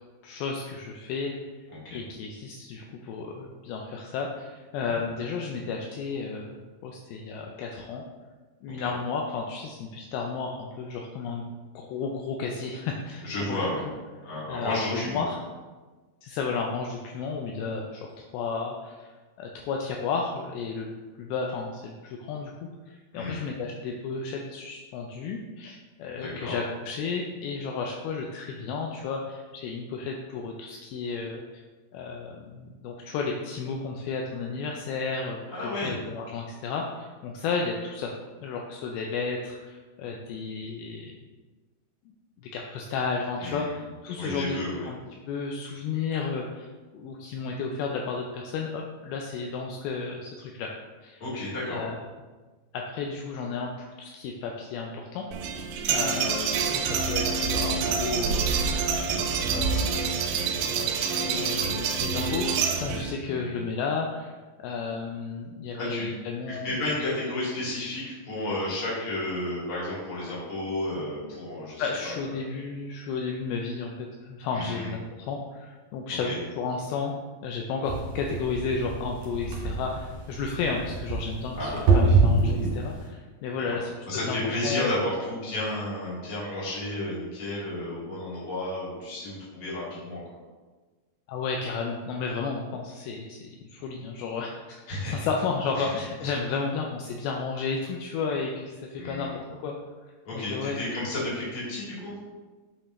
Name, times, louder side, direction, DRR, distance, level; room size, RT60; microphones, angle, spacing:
voice 1, 0.2-1.6 1.9-8.0 8.6-11.4 11.8-13.7 14.5-15.4 16.2-19.1 19.4-31.6 31.9-38.1 38.4-41.2 42.1-44.6 44.9-45.0 45.3-50.7 51.0-51.2 51.7-52.0 52.7-55.3 55.9-58.5 59.3-60.2 60.6-66.7 71.8-77.1 77.4-83.9 84.3-84.9 91.3-99.8 100.3-100.8, left 4 dB, 80° left, 1 dB, 2.4 m, -33 dB
voice 2, 1.7-2.0 4.9-5.0 8.6-8.9 13.2-13.8 14.2-15.2 23.1-23.4 26.2-26.6 35.5-35.9 43.4-43.8 44.2-44.9 51.2-51.8 56.0-56.3 63.2-63.6 65.7-66.1 66.5-72.1 74.5-74.9 76.2-76.4 81.5-82.1 84.1-90.2 94.9-95.3 95.8-95.9 99.0-99.3 100.2-102.1, left 1 dB, 40° left, -7 dB, 2.9 m, -32 dB
sound 1, 55.3-63.1, right 5 dB, 85° right, 1.8 m, -27 dB
sound 2, 77.8-83.1, right 3 dB, 45° right, 2.7 m, -25 dB
8.4 x 5.5 x 3.1 m, 1.3 s
omnidirectional pair, 4.5 m